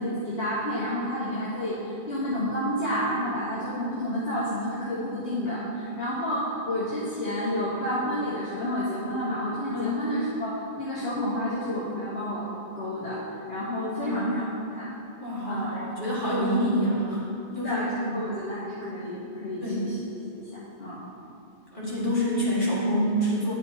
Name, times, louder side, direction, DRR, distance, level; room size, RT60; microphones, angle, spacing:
voice 1, 0.0-14.9 15.5-15.8 16.4-16.5 17.6-20.0 20.3-21.0, equal, 60° left, -13 dB, 2.4 m, -30 dB
voice 2, 15.2-17.2 17.5-17.8 18.0-18.2 19.6-19.9 21.7-23.5, equal, 45° left, -8 dB, 2.3 m, -26 dB
11.0 x 7.0 x 2.9 m, 2.7 s
omnidirectional pair, 1.2 m